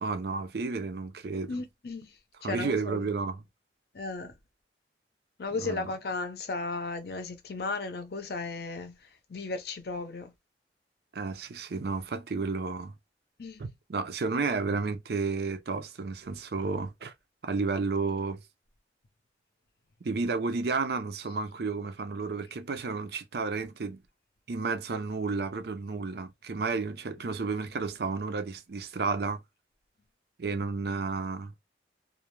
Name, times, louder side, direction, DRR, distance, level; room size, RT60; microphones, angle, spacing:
voice 1, 0.0-1.5 2.4-3.4 5.6-5.9 11.1-12.9 13.6-17.1 17.4-18.4 20.0-24.0 24.5-29.4 30.4-31.5, right 4 dB, 60° right, 0.5 m, -32 dB
voice 2, 1.5-2.1 2.4-3.1 3.9-4.3 5.4-10.3 13.4-13.6, left 3 dB, 60° left, 0.5 m, -35 dB
2.4 x 2.1 x 3.0 m
head